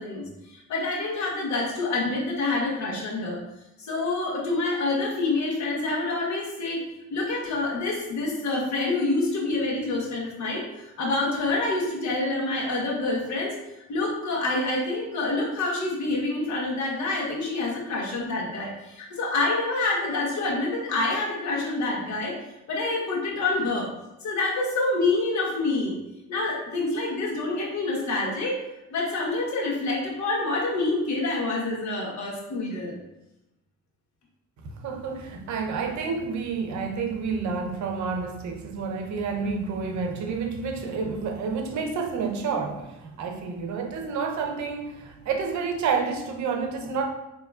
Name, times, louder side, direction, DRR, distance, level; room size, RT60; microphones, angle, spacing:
voice 1, 0.0-3.4 3.8-6.8 7.1-13.5 13.9-22.3 22.7-23.9 24.2-26.0 26.3-28.6 28.9-33.0, left 2 dB, 65° left, -2 dB, 1.2 m, -27 dB
voice 2, 34.6-47.0, right 5 dB, 70° right, 4 dB, 0.7 m, -29 dB
4.7 x 2.9 x 2.3 m, 0.92 s
cardioid pair, 90°, 30 cm